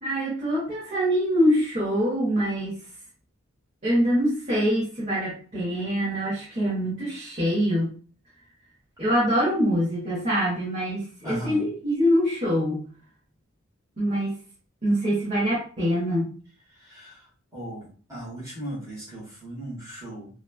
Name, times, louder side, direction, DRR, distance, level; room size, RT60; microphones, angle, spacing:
voice 1, 0.0-2.8 3.8-7.9 9.0-12.8 14.0-14.3 14.8-16.3, equal, 30° right, -8 dB, 0.9 m, -24 dB
voice 2, 11.2-11.6 16.7-17.2 17.5-20.3, right 1 dB, 15° right, -7 dB, 1.1 m, -37 dB
3.1 x 2.2 x 2.3 m, 0.40 s
head